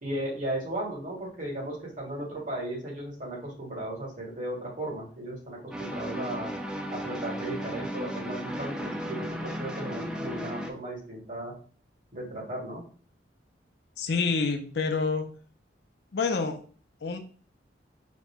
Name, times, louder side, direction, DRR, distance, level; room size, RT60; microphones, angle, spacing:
voice 1, 0.0-6.5 6.9-11.5 12.1-12.8, right 1 dB, 45° right, -2 dB, 1.7 m, -36 dB
sound 1, 5.7-10.7, equal, 5° right, 0.4 m, -35 dB
voice 2, 14.0-15.3 16.1-16.6 17.0-17.2, left 4 dB, 60° left, 6 dB, 0.5 m, -27 dB
4.9 x 2.2 x 3.5 m, 0.42 s
head